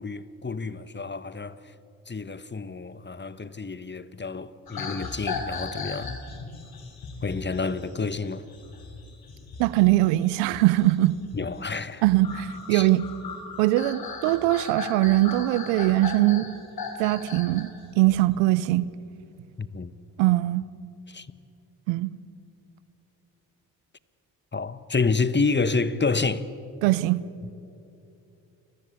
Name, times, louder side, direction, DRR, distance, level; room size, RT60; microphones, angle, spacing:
voice 1, 0.0-1.5 2.1-6.2 7.2-8.4 11.3-12.0 12.7-12.9 19.6-19.9 21.1-21.3 24.5-26.5, left 4 dB, 25° left, 1.4 m, -29 dB
sound 1, 4.7-17.6 18.0-18.3, left 4 dB, 55° left, 4.9 m, -38 dB
voice 2, 9.6-11.2 12.0-13.0 13.6-16.5 17.0-17.7 18.0-18.9 20.2-20.7 21.9-22.1 26.8-27.2, right 16 dB, 85° right, 0.8 m, -21 dB
29.5 x 20.5 x 8.5 m
hypercardioid pair, 45°, 42 cm